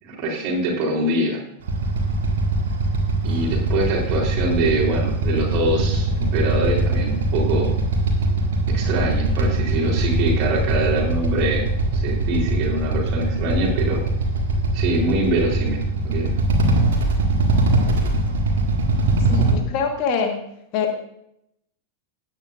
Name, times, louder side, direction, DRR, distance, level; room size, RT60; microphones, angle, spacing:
voice 1, 0.0-1.4 3.2-7.7 8.7-14.0 14.7-16.3, right 1 dB, 40° right, -1 dB, 3.5 m, -24 dB
Motorcycle / Idling, 1.6-19.5, right 2 dB, 60° right, 1.9 m, -21 dB
voice 2, 19.3-20.4 20.7-20.9, left 6 dB, 45° left, 4 dB, 1.5 m, -24 dB
16.0 x 9.5 x 2.5 m, 0.77 s
figure-of-eight pair, 90°, 0 cm